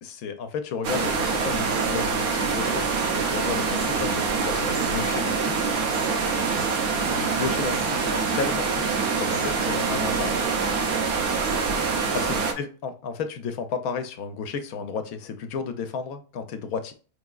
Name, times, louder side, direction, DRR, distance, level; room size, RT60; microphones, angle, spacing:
voice 1, 0.0-5.7 7.1-10.4 12.2-16.9, left 5 dB, 75° left, 8 dB, 1.2 m, -33 dB
sound 1, 0.8-12.5, right 5 dB, 85° right, 1.2 m, -25 dB
4.8 x 3.4 x 2.3 m, 0.37 s
omnidirectional pair, 1.5 m